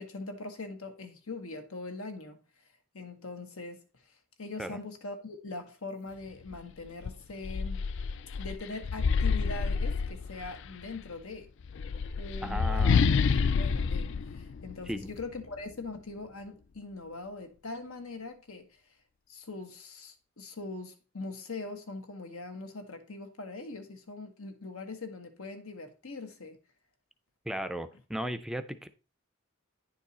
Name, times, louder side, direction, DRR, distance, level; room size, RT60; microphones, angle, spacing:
voice 1, 0.0-2.4 2.9-3.8 4.4-7.9 8.4-11.5 12.2-12.9 13.5-18.7 19.3-26.6, left 3 dB, 85° left, 1.4 m, -42 dB
sound 1, 6.5-6.6 7.0-10.7 11.6-15.2, left 5 dB, 60° left, 0.4 m, -28 dB
voice 2, 12.4-13.1 14.9-15.1 27.5-28.9, equal, ahead, 0.4 m, -36 dB
9.8 x 4.7 x 4.1 m
head